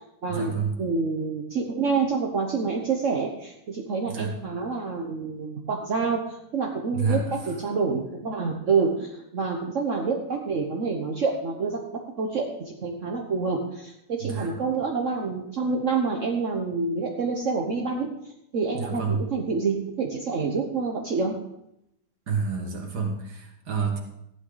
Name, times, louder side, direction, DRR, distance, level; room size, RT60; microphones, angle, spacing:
voice 1, 0.3-0.7 4.1-4.4 6.9-7.7 14.2-14.6 18.7-19.3 22.3-24.0, right 4 dB, 90° right, 0 dB, 2.4 m, -29 dB
voice 2, 0.8-21.3, right 4 dB, 55° right, 1 dB, 1.4 m, -27 dB
15.5 x 11.0 x 4.0 m, 0.81 s
omnidirectional pair, 1.7 m